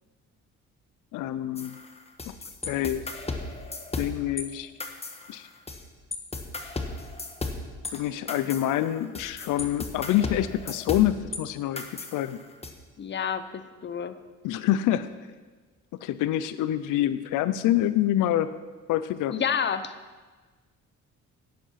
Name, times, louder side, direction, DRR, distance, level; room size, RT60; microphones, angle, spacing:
voice 1, 1.1-1.8 2.3-2.4 2.6-3.1 4.0-4.7 5.3-5.5 7.9-12.4 14.4-15.1 16.0-18.5 18.9-19.4, left 12 dB, 90° left, 13 dB, 0.6 m, -26 dB
sound 1, 1.6-4.4 4.8-5.8 6.1-11.4 11.8-12.7, left 3 dB, 20° left, 1.4 m, -35 dB
voice 2, 13.0-14.2 19.3-19.9, left 7 dB, 35° left, 11 dB, 0.8 m, -29 dB
10.5 x 10.0 x 5.8 m, 1.4 s
cardioid pair, 90°, 30 cm